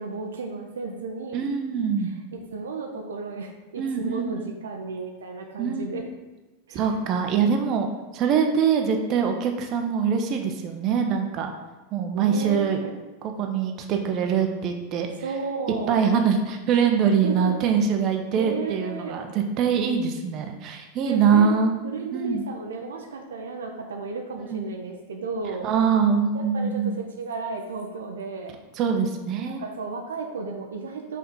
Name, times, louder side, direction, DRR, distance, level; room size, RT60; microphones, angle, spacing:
voice 1, 0.0-1.4 2.0-6.0 6.7-6.8 7.3-7.4 12.1-13.0 15.2-16.0 17.2-17.6 18.3-19.2 21.0-21.6 21.8-25.7 26.3-28.6 29.5-31.2, right 4 dB, 65° right, 3 dB, 0.6 m, -33 dB
voice 2, 1.3-2.1 3.8-4.5 5.6-6.1 6.7-7.9 8.1-11.5 11.9-12.8 13.4-15.1 15.9-21.8 22.1-22.4 24.5-24.6 25.6-27.0 28.8-29.6, right 6 dB, 40° right, 4 dB, 0.7 m, -23 dB
5.7 x 3.7 x 5.4 m, 1.2 s
figure-of-eight pair, 85°, 0 cm